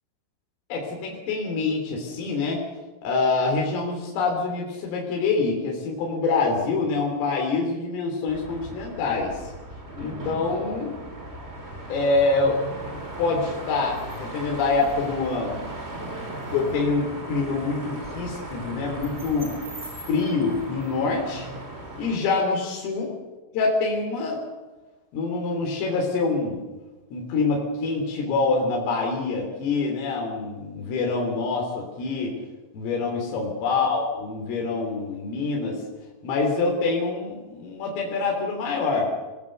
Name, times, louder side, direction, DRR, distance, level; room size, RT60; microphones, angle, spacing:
voice 1, 0.7-2.6 3.0-9.5 10.0-10.9 11.9-12.6 12.9-15.6 16.5-19.5 20.1-21.5 22.0-23.1 23.5-24.4 25.1-26.6 27.1-32.3 32.7-35.8 36.2-39.1, left 3 dB, 75° left, -1 dB, 6.3 m, -25 dB
sound 1, 8.3-22.2, right 1 dB, 20° right, 2.2 m, -37 dB
28.5 x 19.5 x 6.8 m, 1.2 s
omnidirectional pair, 5.9 m